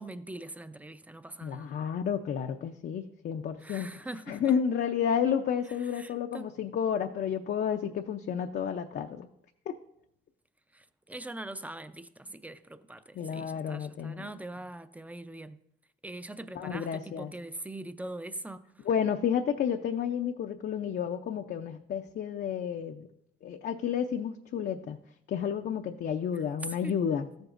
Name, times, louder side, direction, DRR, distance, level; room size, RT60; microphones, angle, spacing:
voice 1, 0.0-1.8 3.6-4.5 5.8-6.5 10.7-15.6 16.0-18.9 26.3-27.0, right 1 dB, 5° right, 0.5 m, -42 dB
voice 2, 1.4-4.0 4.3-9.3 9.7-9.8 13.2-14.2 16.5-17.3 18.9-23.1 23.4-25.0 25.3-27.3, left 8 dB, 55° left, 0.6 m, -31 dB
13.5 x 7.8 x 2.5 m
cardioid pair, 90°, 20 cm